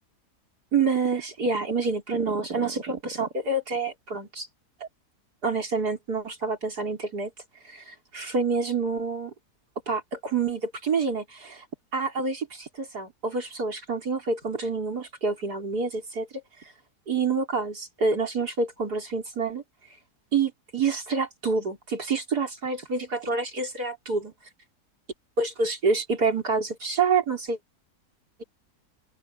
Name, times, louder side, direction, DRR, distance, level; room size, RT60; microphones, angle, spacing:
voice 1, 0.7-4.5 4.8-4.9 5.4-7.3 7.6-9.3 9.9-11.6 11.9-16.3 17.1-19.6 20.3-24.3 25.4-27.6, right 4 dB, 75° right, 5.2 m, -27 dB
open air
omnidirectional pair, 1.7 m